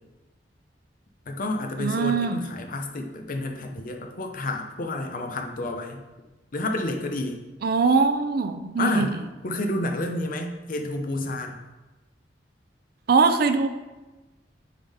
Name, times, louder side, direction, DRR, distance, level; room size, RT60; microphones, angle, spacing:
voice 1, 1.3-6.0 6.5-7.4 8.8-9.1 9.4-11.6, left 2 dB, 50° left, 3 dB, 0.7 m, -29 dB
voice 2, 1.8-2.4 7.6-9.1 13.1-13.7, right 4 dB, 60° right, 9 dB, 0.5 m, -22 dB
9.4 x 3.6 x 3.5 m, 1.1 s
head